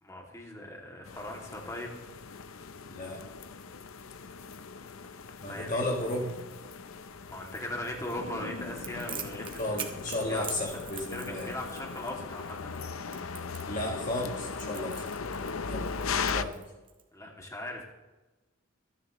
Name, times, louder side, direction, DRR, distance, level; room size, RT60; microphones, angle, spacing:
voice 1, 0.0-1.9 4.3-4.4 5.4-5.8 7.3-9.7 10.3-10.8 11.1-12.7 17.1-17.8, left 1 dB, 15° left, 0 dB, 2.4 m, -39 dB
sound 1, 1.1-16.4, left 5 dB, 85° left, 0.7 m, -39 dB
voice 2, 2.9-3.2 5.4-6.3 9.6-11.5 13.7-15.1 15.6-15.9 16.3-16.6, left 1 dB, 40° left, 0 dB, 1.8 m, -33 dB
Crackle, 8.8-17.0, right 7 dB, 25° right, 1.4 m, -44 dB
26.0 x 10.5 x 3.1 m, 1.1 s
head